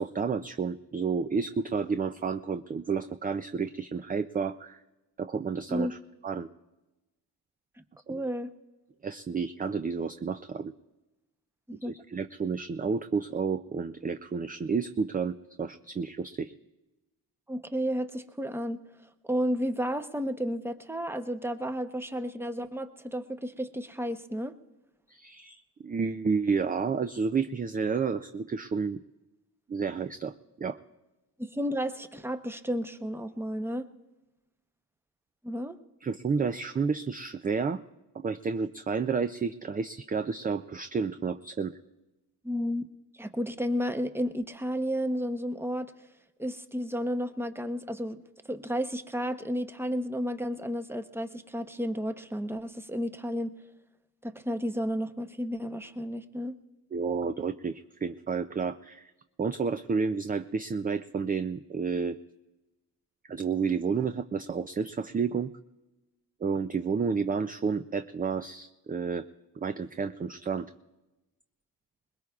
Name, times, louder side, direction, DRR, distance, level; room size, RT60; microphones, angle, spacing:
voice 1, 0.0-4.8 5.2-6.0 6.2-6.5 8.1-8.2 9.0-10.7 11.8-16.5 25.1-29.0 29.7-30.8 36.0-37.8 38.2-41.8 56.9-59.1 59.4-62.2 63.3-65.5 66.4-69.3 69.6-70.7, right 5 dB, 20° right, 10 dB, 0.4 m, -31 dB
voice 2, 8.1-8.5 11.7-11.9 17.5-18.8 19.2-24.5 31.4-33.9 35.4-35.8 42.4-42.8 43.2-45.9 46.4-48.2 48.4-53.6 54.2-56.6, equal, 5° right, 9 dB, 0.8 m, -32 dB
22.0 x 20.0 x 2.4 m, 1.0 s
cardioid pair, 65°, 41 cm